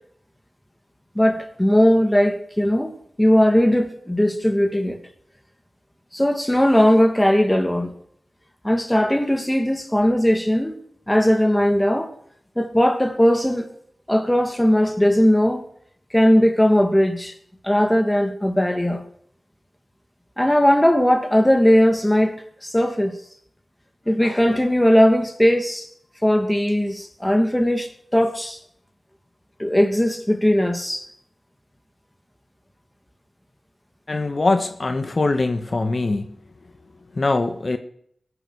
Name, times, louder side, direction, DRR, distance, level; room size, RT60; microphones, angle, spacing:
voice 1, 1.2-2.9 3.2-5.0 6.1-7.9 8.6-10.7 11.1-12.1 12.6-13.7 14.1-15.6 16.1-17.3 17.6-19.0 20.4-22.4 22.6-23.1 24.1-25.9 26.2-28.6 29.6-31.1, equal, 10° left, 2.4 m, -18 dB
voice 2, 34.1-36.4 37.1-37.8, left 3 dB, 50° left, 1.4 m, -22 dB
21.5 x 10.0 x 6.5 m
wide cardioid pair, 70°, 0 cm